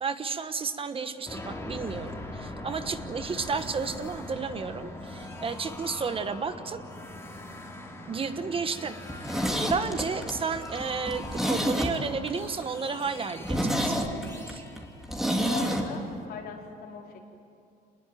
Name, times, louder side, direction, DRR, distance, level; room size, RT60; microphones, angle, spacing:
voice 1, 0.0-6.8 8.1-9.0 9.2-14.6, right 5 dB, 35° right, 10 dB, 1.2 m, -32 dB
sound 1, 1.3-15.9, left 1 dB, 15° left, 3.4 m, -42 dB
Zipper (clothing), 9.0-12.3 12.6-12.7 13.1-13.2 13.4-15.9 16.1-16.2, equal, ahead, 3.1 m, -29 dB
voice 2, 15.4-17.2, left 6 dB, 65° left, 0 dB, 4.4 m, -40 dB
27.0 x 20.5 x 9.2 m, 2.4 s
cardioid pair, 110°, 17 cm